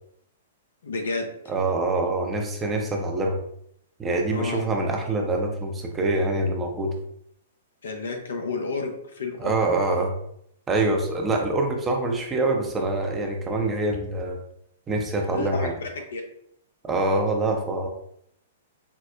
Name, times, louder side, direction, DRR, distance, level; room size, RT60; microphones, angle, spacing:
voice 1, 0.8-1.3 4.3-4.6 7.8-9.6 15.3-16.2, left 3 dB, 75° left, 3 dB, 0.6 m, -31 dB
voice 2, 1.5-3.4 4.0-6.9 9.4-10.1 10.7-14.4 14.9-15.7 16.8-17.9, right 2 dB, 20° right, 2 dB, 0.6 m, -25 dB
4.7 x 2.0 x 2.4 m, 0.72 s
hypercardioid pair, 115°, 0 cm